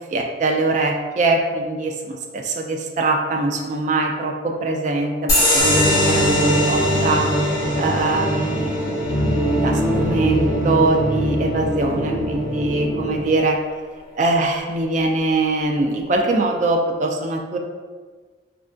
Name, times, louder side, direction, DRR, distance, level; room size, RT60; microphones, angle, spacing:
voice 1, 0.1-7.3 7.8-9.0 9.6-13.6 14.2-17.6, right 2 dB, 40° right, 2 dB, 0.3 m, -22 dB
sound 1, 5.3-12.3, left 1 dB, 20° left, 0.9 m, -24 dB
sound 2, 5.6-13.2, equal, ahead, 1.4 m, -22 dB
3.3 x 2.5 x 2.2 m, 1.5 s
head